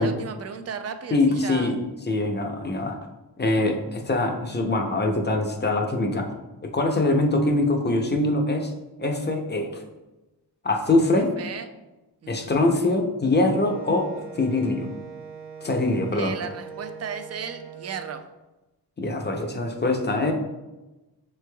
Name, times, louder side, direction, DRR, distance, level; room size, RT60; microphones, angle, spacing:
voice 1, 0.0-1.7 7.4-7.5 11.4-11.7 12.2-12.5 16.1-18.2, right 6 dB, 40° right, 8 dB, 0.4 m, -35 dB
voice 2, 1.1-1.8 2.1-3.0 3.4-6.3 6.6-8.7 9.0-9.8 10.6-11.3 12.3-14.1 14.4-14.9 15.6-16.3 19.0-20.3, left 2 dB, 25° left, 3 dB, 0.6 m, -23 dB
Wind instrument woodwind instrument, 13.6-18.2, right 6 dB, 80° right, 0.8 m, -41 dB
6.6 x 3.2 x 2.2 m, 1.1 s
wide cardioid pair, 100°, 40 cm